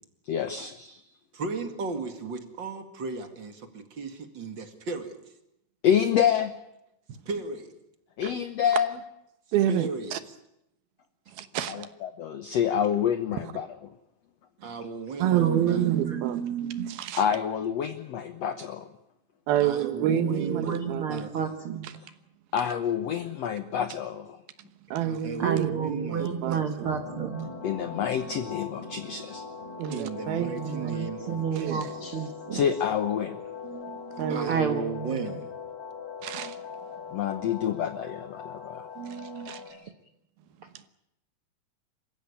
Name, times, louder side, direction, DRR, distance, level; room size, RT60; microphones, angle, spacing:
voice 1, 0.3-1.0 5.8-6.5 8.2-8.9 11.7-13.7 17.2-18.9 22.5-24.4 27.6-29.4 32.5-33.4 37.1-38.9, left 8 dB, 75° left, 1.5 m, -27 dB
voice 2, 1.3-5.2 7.3-7.7 9.7-10.1 14.6-15.9 19.6-21.6 25.0-26.9 29.9-32.1 34.3-35.5, right 4 dB, 35° right, 2.2 m, -36 dB
voice 3, 9.5-10.2 11.3-11.9 13.4-13.5 15.2-17.2 19.5-21.1 21.8-21.9 24.9-25.7 26.2-26.9 29.8-30.9 31.5-31.8 33.6-34.5 36.2-36.6 39.0-39.6 40.7-40.8, right 10 dB, 80° right, 3.1 m, -29 dB
voice 4, 15.3-16.2 16.8-16.9 20.1-22.0 25.4-27.5 30.4-32.6 34.5-35.4 39.6-39.9, right 7 dB, 60° right, 1.5 m, -31 dB
sound 1, 26.8-39.7, left 5 dB, 45° left, 4.3 m, -41 dB
27.0 x 15.5 x 9.9 m
omnidirectional pair, 4.4 m